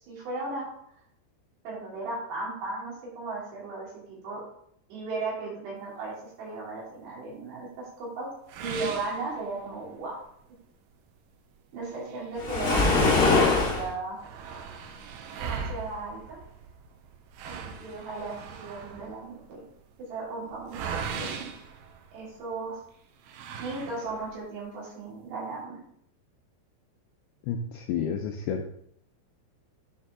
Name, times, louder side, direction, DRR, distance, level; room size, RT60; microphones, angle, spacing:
voice 1, 0.1-0.7 1.6-4.4 4.9-8.3 8.6-10.2 11.7-14.2 15.4-16.4 17.4-19.6 20.0-21.5 22.1-22.8 23.6-25.8, right 3 dB, 75° right, -5 dB, 4.6 m, -36 dB
sound 1, 8.5-10.0 10.4-10.5 10.9-11.0 11.8-13.2 13.5-13.6 13.8-22.5 23.2-24.4, right 6 dB, 90° right, 2.0 m, -39 dB
Waves surf, 12.4-13.9, left 3 dB, 30° left, 1.5 m, -22 dB
voice 2, 27.5-28.7, left 7 dB, 80° left, 3 dB, 2.3 m, -30 dB
9.4 x 4.4 x 3.6 m, 0.70 s
omnidirectional pair, 5.0 m